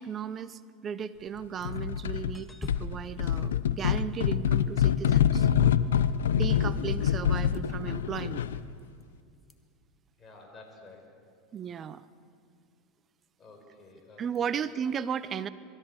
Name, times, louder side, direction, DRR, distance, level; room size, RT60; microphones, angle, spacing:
voice 1, 0.0-5.7 6.3-8.5 11.5-12.0 14.2-15.5, right 8 dB, 35° right, 15 dB, 0.7 m, -35 dB
sound 1, 1.4-1.8 2.3-4.7 7.5-7.8 8.8-9.0 9.4-9.5 14.3-14.4, left 2 dB, 15° left, 1.6 m, -46 dB
sound 2, 1.6-2.3 2.7-8.7, left 9 dB, 90° left, 0.6 m, -26 dB
voice 2, 10.2-11.1 13.4-14.6, left 3 dB, 30° left, 3 dB, 5.4 m, -51 dB
23.5 x 14.0 x 8.3 m, 2.3 s
hypercardioid pair, 100°, 0 cm